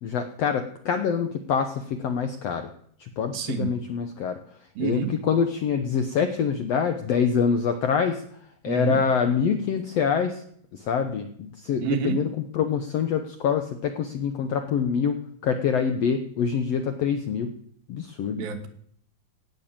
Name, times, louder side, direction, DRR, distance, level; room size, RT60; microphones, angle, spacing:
voice 1, 0.0-2.7 3.0-4.4 4.8-8.2 8.6-10.4 10.7-12.3 12.5-17.5 17.9-18.5, left 6 dB, 75° left, 7 dB, 1.4 m, -25 dB
voice 2, 3.3-3.7 4.8-5.1 8.7-9.0 11.8-12.2 18.4-18.7, right 8 dB, 85° right, 7 dB, 3.3 m, -28 dB
16.5 x 6.6 x 8.7 m, 0.63 s
omnidirectional pair, 4.1 m